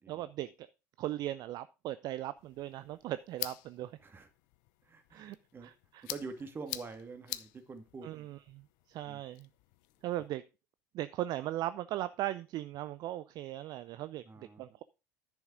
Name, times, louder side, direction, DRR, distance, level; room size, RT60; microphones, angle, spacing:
voice 1, 0.1-0.7 1.0-3.9 5.1-5.4 5.6-6.1 8.0-9.5 10.0-10.4 10.9-14.8, right 14 dB, 45° right, 0.5 m, -38 dB
sound 1, 2.4-10.3, left 17 dB, 55° left, 0.7 m, -47 dB
voice 2, 4.9-5.7 6.1-8.4 9.1-9.2 14.3-14.6, right 4 dB, 25° right, 2.1 m, -46 dB
10.5 x 6.3 x 4.9 m
hypercardioid pair, 75°, 9 cm